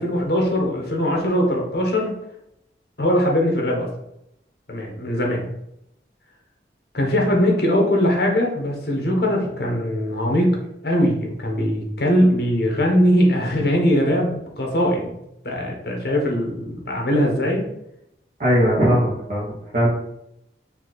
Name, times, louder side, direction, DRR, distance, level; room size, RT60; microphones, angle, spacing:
voice 1, 0.0-2.1 3.0-3.9 4.7-5.5 6.9-10.6 10.8-15.1 15.4-17.7, equal, 60° left, 0 dB, 1.1 m, -21 dB
voice 2, 18.4-19.9, equal, 45° right, -8 dB, 1.1 m, -19 dB
4.3 x 2.7 x 4.0 m, 0.81 s
head